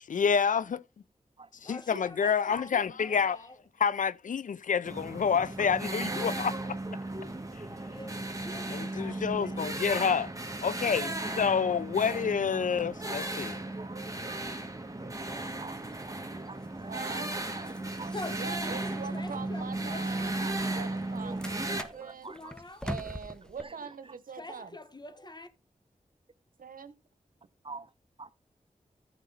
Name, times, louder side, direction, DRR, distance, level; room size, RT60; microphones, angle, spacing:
voice 1, 0.1-0.8 1.6-3.4 3.8-6.5 8.7-10.3 10.6-13.6, left 6 dB, 70° left, 0.4 m, -28 dB
voice 2, 1.6-3.6 7.9-9.7 18.1-20.6 22.3-22.9 24.4-25.5, left 2 dB, 30° left, 1.4 m, -45 dB
sound 1, 4.8-21.8, right 2 dB, 25° right, 1.6 m, -35 dB
voice 3, 6.0-6.4 16.9-17.3 18.3-22.3 22.8-24.7 26.6-26.9, right 6 dB, 85° right, 1.0 m, -43 dB
voice 4, 13.8-14.5 15.0-17.0 17.3-18.1 20.4-20.5 21.2-21.4 21.7-22.5 23.6-23.7 27.6-27.9 28.2-28.3, right 4 dB, 40° right, 0.7 m, -47 dB
sound 2, 15.6-23.6, equal, 5° left, 1.1 m, -46 dB
14.5 x 5.3 x 4.0 m
cardioid pair, 50°, 14 cm